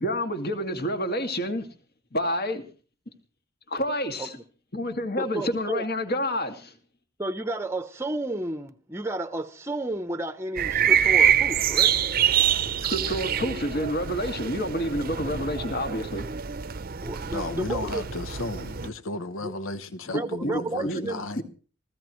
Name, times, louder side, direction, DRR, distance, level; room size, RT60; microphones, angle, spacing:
voice 1, 0.0-1.7 2.1-2.6 3.7-4.4 4.7-6.7 12.8-16.3 20.1-21.0 21.4-21.5, equal, 50° left, 2.3 m, -29 dB
voice 2, 5.2-5.8 7.2-11.9 17.0-18.0 19.4-19.5 20.1-21.3, right 2 dB, 15° right, 0.8 m, -32 dB
sound 1, 10.6-18.9, right 9 dB, 50° right, 0.7 m, -25 dB
voice 3, 17.2-21.4, left 2 dB, 90° left, 1.0 m, -34 dB
24.5 x 15.5 x 3.2 m
head